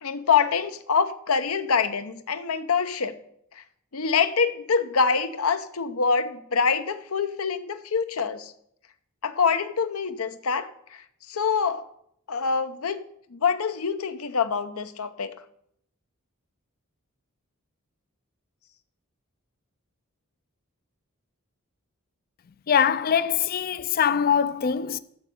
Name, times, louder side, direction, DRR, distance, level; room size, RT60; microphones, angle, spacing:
voice 1, 0.0-3.2 3.6-3.7 3.9-8.5 9.2-11.8 12.3-13.0 13.3-15.3, left 5 dB, 85° left, 0.7 m, -25 dB
voice 2, 22.7-25.0, left 8 dB, 45° left, 0.4 m, -23 dB
7.4 x 7.2 x 7.9 m
head